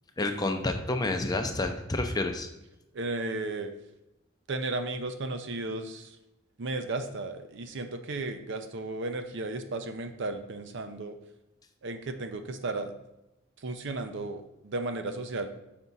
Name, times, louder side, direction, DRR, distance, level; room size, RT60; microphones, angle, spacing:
voice 1, 0.2-2.5, left 2 dB, 20° left, 6 dB, 0.5 m, -29 dB
voice 2, 2.9-3.7 4.5-6.2 6.6-11.1 11.8-12.9 13.6-15.5, right 2 dB, 60° right, 7 dB, 0.6 m, -34 dB
5.9 x 4.8 x 4.0 m, 0.93 s
head